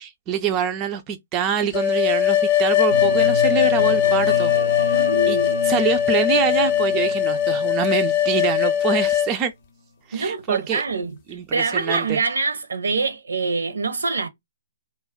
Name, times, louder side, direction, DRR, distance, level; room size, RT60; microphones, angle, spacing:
voice 1, 0.0-4.5 5.3-9.5 10.1-10.8 11.3-12.2, right 7 dB, 25° right, 0.4 m, -25 dB
sound 1, 1.7-9.3, left 10 dB, 40° left, 0.5 m, -20 dB
sound 2, 2.9-8.8, left 1 dB, 85° left, 0.8 m, -30 dB
voice 2, 4.9-5.6 10.1-11.1 11.5-14.3, right 4 dB, 70° right, 0.6 m, -24 dB
2.2 x 2.1 x 3.5 m
figure-of-eight pair, 125°, 0 cm